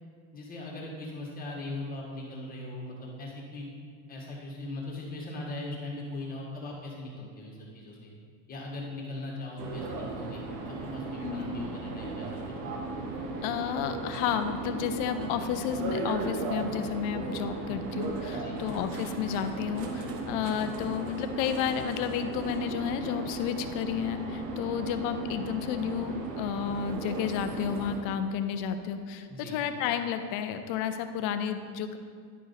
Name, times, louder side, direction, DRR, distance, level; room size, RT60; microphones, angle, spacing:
voice 1, 0.3-3.7 4.1-8.1 8.5-12.7 18.3-18.6 29.3-29.6, left 2 dB, 15° left, -3 dB, 1.6 m, -40 dB
sound 1, 9.6-28.0, right 3 dB, 65° right, 1.3 m, -36 dB
voice 2, 11.2-11.7 13.4-32.0, left 8 dB, 40° left, 9 dB, 0.5 m, -32 dB
11.0 x 5.0 x 4.1 m, 2.1 s
supercardioid pair, 155°, 50 cm